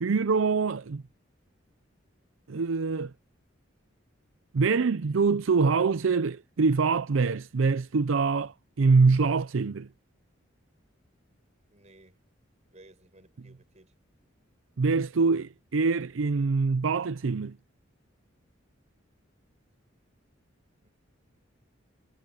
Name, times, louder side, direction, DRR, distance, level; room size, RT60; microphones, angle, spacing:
voice 1, 0.0-1.0 2.5-3.1 4.5-9.9 14.8-17.6, right 4 dB, 85° right, 0.6 m, -24 dB
voice 2, 11.7-12.2 12.7-13.9 20.8-20.9, right 1 dB, 35° right, 6.5 m, -57 dB
head